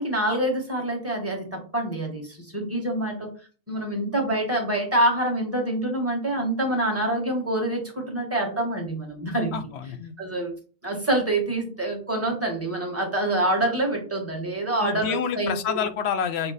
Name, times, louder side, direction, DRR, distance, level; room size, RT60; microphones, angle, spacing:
voice 1, 0.0-3.3 3.7-9.6 10.2-10.5 10.8-15.9, right 1 dB, 15° right, 0 dB, 1.2 m, -26 dB
voice 2, 9.5-10.1 14.8-16.5, left 7 dB, 80° left, 9 dB, 0.9 m, -28 dB
5.7 x 2.1 x 3.9 m, 0.38 s
omnidirectional pair, 1.1 m